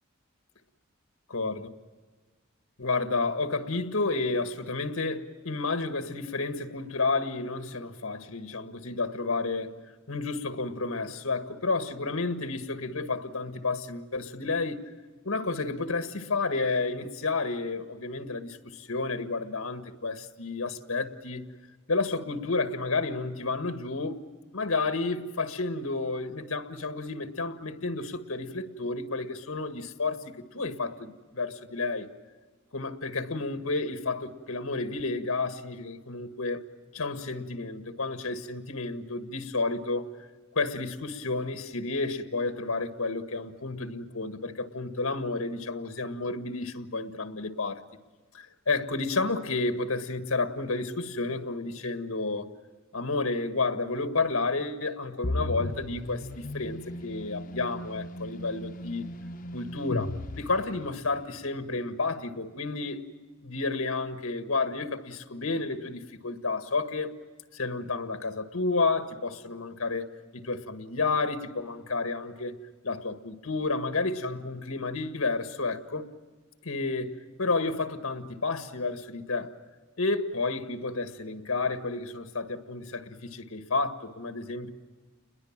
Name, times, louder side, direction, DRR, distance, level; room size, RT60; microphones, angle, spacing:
voice 1, 1.3-1.7 2.8-9.8 10.1-14.9 15.3-21.4 21.9-24.2 24.5-32.1 32.7-36.7 36.9-40.1 40.5-47.8 48.3-52.5 52.9-59.0 59.5-63.0 63.4-67.1 67.5-70.1 70.3-72.5 72.8-76.1 76.6-79.5 80.0-84.7, left 3 dB, 90° left, 1.7 m, -31 dB
sound 1, 55.2-61.2, left 1 dB, 40° left, 0.8 m, -36 dB
30.0 x 21.5 x 7.4 m
head